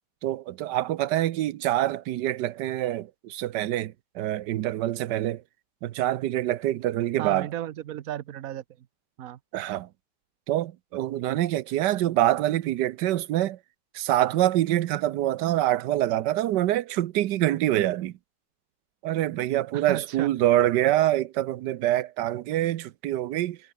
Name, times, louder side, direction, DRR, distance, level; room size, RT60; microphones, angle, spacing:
voice 1, 0.2-5.4 5.8-7.5 9.5-9.9 10.5-13.6 13.9-18.1 19.0-23.6, right 13 dB, 85° right, 1.3 m, -25 dB
voice 2, 7.2-8.9 9.2-9.4 19.7-20.3, right 12 dB, 60° right, 1.1 m, -34 dB
omnidirectional pair, 1.8 m